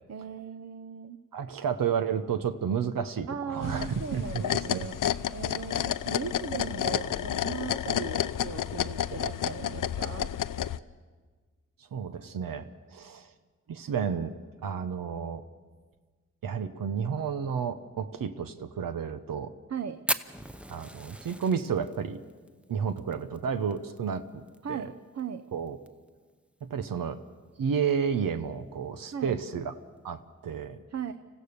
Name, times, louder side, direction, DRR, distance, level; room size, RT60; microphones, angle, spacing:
voice 1, 0.1-1.2 3.3-5.0 5.3-10.3 19.7-20.0 24.6-25.4 29.1-29.4 30.9-31.1, right 7 dB, 50° right, 10 dB, 0.8 m, -37 dB
voice 2, 1.3-4.9 11.8-13.3 13.7-14.3 14.6-15.4 16.4-19.5 20.7-22.2 22.7-24.9 25.5-25.8 26.7-27.2 27.6-29.7 30.0-30.8, right 7 dB, 80° right, 9 dB, 0.9 m, -31 dB
sound 1, 3.6-10.8, left 10 dB, 70° left, 0.6 m, -31 dB
Fire, 20.1-24.6 24.8-24.9 25.2-25.3 25.7-26.1 26.6-26.7 27.7-27.9, equal, 5° right, 0.8 m, -36 dB
26.0 x 15.0 x 6.7 m, 1.4 s
cardioid pair, 50°, 33 cm